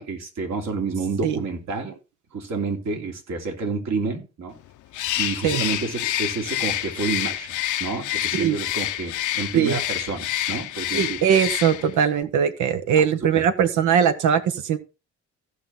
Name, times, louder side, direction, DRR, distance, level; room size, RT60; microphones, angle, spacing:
voice 1, 0.0-1.9 2.3-4.6 5.1-7.5 7.8-11.2 12.9-13.0, right 4 dB, 65° right, 2 dB, 3.0 m, -29 dB
Bird, 4.9-12.0, left 13 dB, 75° left, 0.8 m, -28 dB
voice 2, 10.9-14.8, right 8 dB, 80° right, 10 dB, 1.2 m, -21 dB
15.0 x 5.9 x 3.8 m, 0.31 s
cardioid pair, 90°, 30 cm